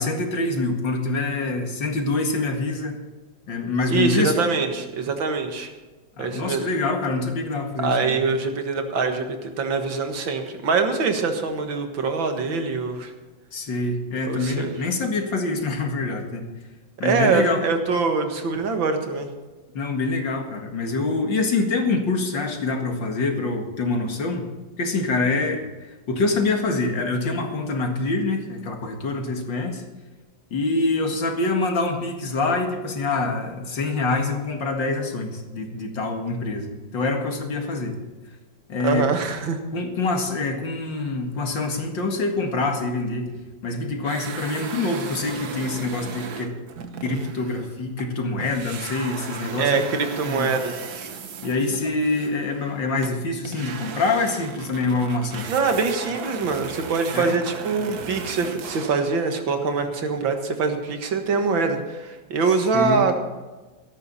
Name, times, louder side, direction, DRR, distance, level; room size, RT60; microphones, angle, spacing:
voice 1, 0.0-3.0 3.5-4.4 6.2-8.2 13.5-16.4 17.0-17.6 19.7-24.5 24.8-29.8 30.5-38.0 38.7-39.1 39.7-43.3 43.6-46.5 47.0-50.5 51.4-55.5 57.1-57.4 62.7-63.1, left 3 dB, 75° left, 3 dB, 2.6 m, -25 dB
voice 2, 3.9-5.7 6.2-6.6 7.8-13.1 14.3-14.7 17.0-19.3 38.8-39.6 49.6-50.8 55.5-63.2, right 4 dB, 85° right, 5 dB, 2.3 m, -24 dB
sound 1, 44.0-48.1 48.4-59.2, right 6 dB, 60° right, 1.5 m, -36 dB
16.5 x 13.5 x 4.2 m, 1.2 s
omnidirectional pair, 2.1 m